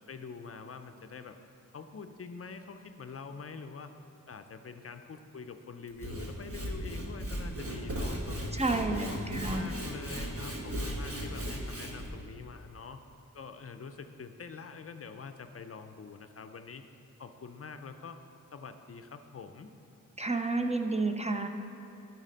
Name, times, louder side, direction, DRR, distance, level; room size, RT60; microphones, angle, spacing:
voice 1, 0.1-1.4 1.7-3.9 4.3-8.4 8.7-13.0 13.3-16.8 17.2-18.2 18.5-19.7, left 5 dB, 45° left, 8 dB, 0.5 m, -45 dB
Sawing / Wood, 5.9-12.1, equal, 45° right, 1.2 m, -36 dB
voice 2, 8.5-9.6 20.2-21.5, right 3 dB, 20° right, 5 dB, 0.4 m, -30 dB
12.5 x 4.1 x 5.1 m, 2.9 s
wide cardioid pair, 90°, 33 cm